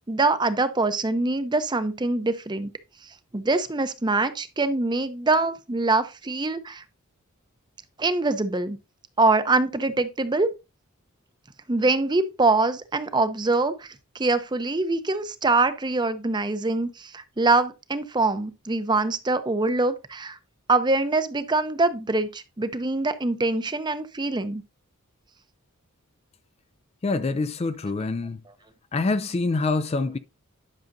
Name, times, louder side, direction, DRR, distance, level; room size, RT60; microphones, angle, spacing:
voice 1, 0.1-2.7 3.3-6.8 8.0-8.8 9.2-10.5 11.7-20.4 20.7-24.6, right 3 dB, 20° right, 0.6 m, -24 dB
voice 2, 27.0-28.4 28.9-30.2, left 3 dB, 25° left, 0.3 m, -25 dB
10.5 x 6.3 x 2.6 m
head